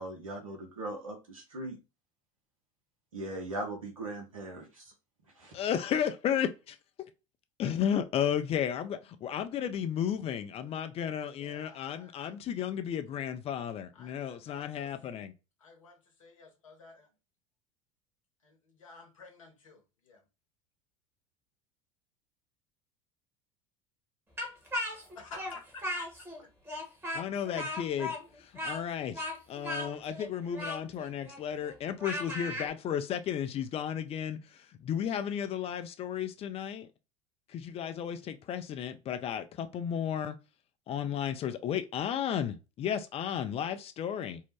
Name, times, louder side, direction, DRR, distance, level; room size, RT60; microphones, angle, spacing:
voice 1, 0.0-1.8 3.1-4.9 5.4-5.5, right 1 dB, 85° right, 0.9 m, -39 dB
voice 2, 5.5-6.8 7.6-15.3 27.1-34.4 34.8-36.9 37.5-40.4 40.9-44.4, left 9 dB, 35° left, 0.5 m, -33 dB
voice 3, 11.4-12.4 13.9-14.9 15.6-17.1 18.4-20.2 25.1-26.1 26.4-26.5, left 4 dB, 80° left, 0.9 m, -51 dB
Speech, 24.4-26.4 26.7-32.7, left 1 dB, 15° right, 1.0 m, -37 dB
2.7 x 2.1 x 3.2 m
hypercardioid pair, 70°, 17 cm